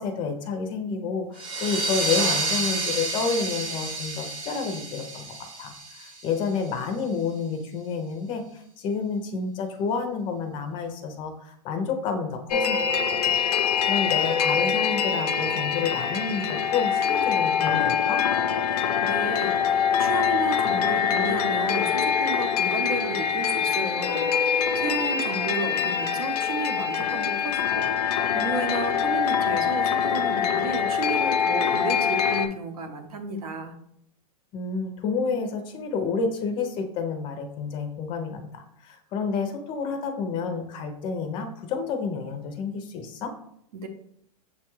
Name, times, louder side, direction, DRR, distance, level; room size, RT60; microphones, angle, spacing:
voice 1, 0.0-18.2 34.5-43.3, left 5 dB, 25° left, 6 dB, 0.5 m, -30 dB
sound 1, 1.4-6.7, right 2 dB, 25° right, 0.7 m, -30 dB
sound 2, 12.5-32.5, left 7 dB, 90° left, 0.5 m, -24 dB
voice 2, 19.0-27.9 28.3-33.7 43.7-43.9, right 3 dB, 75° right, 6 dB, 0.8 m, -33 dB
6.7 x 2.3 x 3.0 m, 0.71 s
supercardioid pair, 155°, 20 cm